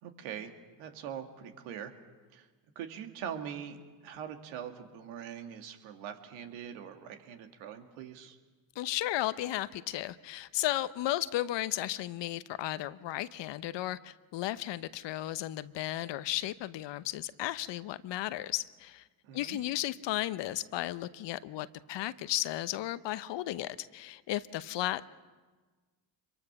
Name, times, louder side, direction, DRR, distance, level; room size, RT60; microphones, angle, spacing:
voice 1, 0.0-0.5 0.8-1.9 2.3-2.5 2.8-3.8 4.0-8.4 19.2-19.6, right 8 dB, 75° right, 6 dB, 2.2 m, -42 dB
voice 2, 8.8-19.0 19.3-25.0, left 14 dB, 60° left, 15 dB, 0.9 m, -34 dB
25.5 x 23.0 x 6.0 m, 1.4 s
hypercardioid pair, 60°, 48 cm